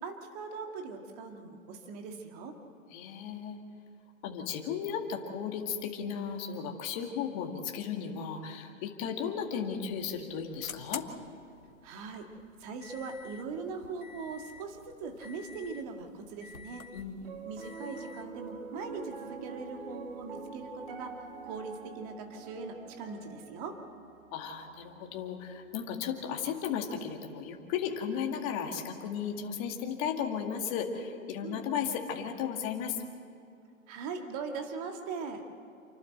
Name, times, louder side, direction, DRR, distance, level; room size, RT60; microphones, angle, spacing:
voice 1, 0.0-2.6 11.8-12.3 12.6-16.9 17.5-21.2 21.4-23.8 31.4-31.7 33.9-35.4, right 4 dB, 25° right, 4 dB, 2.1 m, -40 dB
voice 2, 2.9-3.6 4.2-11.0 16.9-17.4 24.3-33.0, left 7 dB, 25° left, 3 dB, 2.1 m, -35 dB
sound 1, 9.4-21.9, left 6 dB, 80° left, 1.5 m, -51 dB
Piano, 17.2-27.5, right 5 dB, 45° right, 2.2 m, -47 dB
28.5 x 12.0 x 7.9 m, 2.5 s
hypercardioid pair, 140°, 41 cm